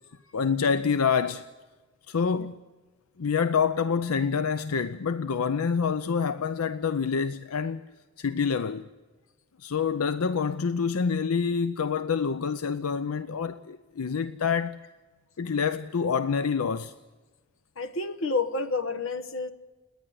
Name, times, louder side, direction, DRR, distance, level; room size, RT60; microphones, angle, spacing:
voice 1, 0.3-1.5 2.1-2.6 3.2-7.9 8.2-8.9 9.6-14.8 15.4-16.9, left 6 dB, 90° left, 0.6 m, -27 dB
voice 2, 17.8-19.5, left 3 dB, 65° left, 1.3 m, -29 dB
29.5 x 10.0 x 9.4 m
head